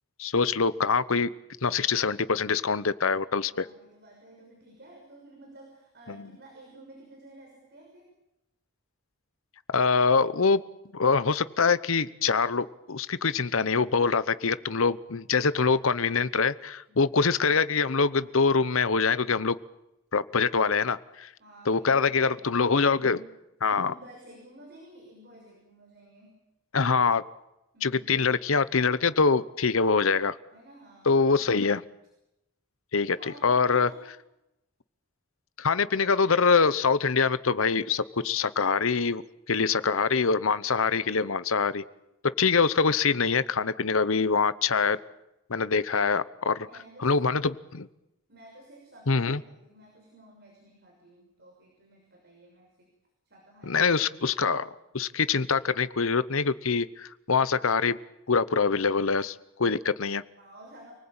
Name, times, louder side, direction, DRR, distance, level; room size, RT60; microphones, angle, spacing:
voice 1, 0.2-1.3 1.6-3.7 6.1-6.2 9.7-10.6 10.9-19.6 20.1-21.3 21.7-23.2 23.6-23.9 26.7-27.2 27.8-30.3 31.1-31.8 32.9-33.2 33.4-33.9 35.6-39.2 39.5-41.8 42.4-45.0 45.5-46.5 47.0-47.9 49.1-49.4 53.7-58.0 58.3-60.2, left 5 dB, 70° left, 16 dB, 0.9 m, -24 dB
voice 2, 3.3-8.1 16.9-17.4 21.4-23.3 23.8-26.3 27.7-28.3 30.5-31.5 33.2-34.1 46.4-47.3 48.3-52.9 53.2-53.8 60.4-60.9, right 1 dB, 50° right, 0 dB, 6.4 m, -52 dB
29.0 x 19.5 x 8.9 m, 0.91 s
head